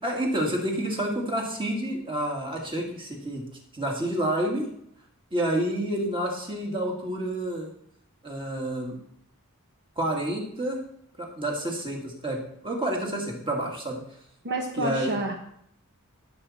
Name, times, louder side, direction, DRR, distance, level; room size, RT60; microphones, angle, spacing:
voice 1, 0.0-3.4 3.7-4.7 5.3-7.7 8.2-9.0 10.0-10.8 11.2-14.0 14.8-15.1, right 1 dB, 25° right, 0 dB, 2.2 m, -29 dB
voice 2, 14.4-15.3, right 2 dB, 50° right, 3 dB, 1.1 m, -29 dB
17.0 x 7.2 x 4.3 m, 0.71 s
head